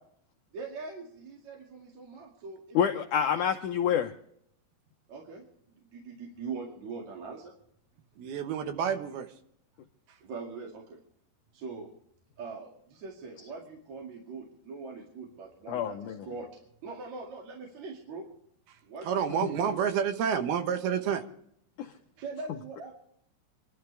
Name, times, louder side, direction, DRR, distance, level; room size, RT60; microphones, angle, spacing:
voice 1, 0.5-2.8 3.1-3.3 5.1-5.4 5.8-7.5 10.2-11.0 11.5-11.9 12.4-16.5 16.8-18.3 18.8-19.8 22.2-22.9, right 4 dB, 50° right, -2 dB, 3.3 m, -42 dB
voice 2, 2.7-4.1 15.7-16.2 21.8-21.9, left 8 dB, 80° left, 4 dB, 1.8 m, -27 dB
voice 3, 8.2-9.3 19.0-21.2, right 8 dB, 75° right, 7 dB, 3.1 m, -29 dB
27.5 x 12.0 x 3.4 m, 0.71 s
omnidirectional pair, 4.5 m